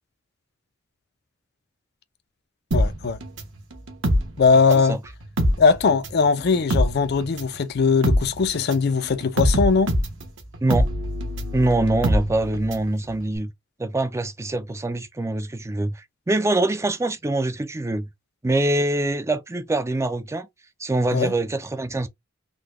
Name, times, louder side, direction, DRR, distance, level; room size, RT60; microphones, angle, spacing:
voice 1, 2.7-3.2 4.4-5.0 5.6-10.0 21.1-21.3, left 5 dB, 55° left, 0.5 m, -20 dB
sound 1, 2.7-4.9 5.2-12.9 13.2-13.3, equal, 70° right, 1.1 m, -23 dB
voice 2, 11.5-13.5 13.8-18.1 18.4-20.5 20.8-22.1, right 2 dB, 15° right, 0.4 m, -24 dB
3.8 x 2.2 x 3.1 m
head